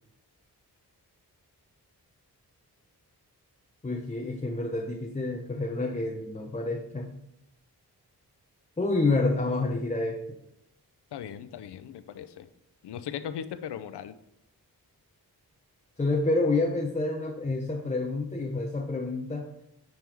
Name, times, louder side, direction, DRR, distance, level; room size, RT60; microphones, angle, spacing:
voice 1, 3.8-7.1 8.8-10.2 16.0-19.5, left 2 dB, 20° left, 2 dB, 0.8 m, -28 dB
voice 2, 11.1-12.5 12.8-14.1, left 9 dB, 90° left, 12 dB, 0.5 m, -38 dB
7.6 x 3.5 x 4.5 m, 0.80 s
cardioid pair, 50°, 39 cm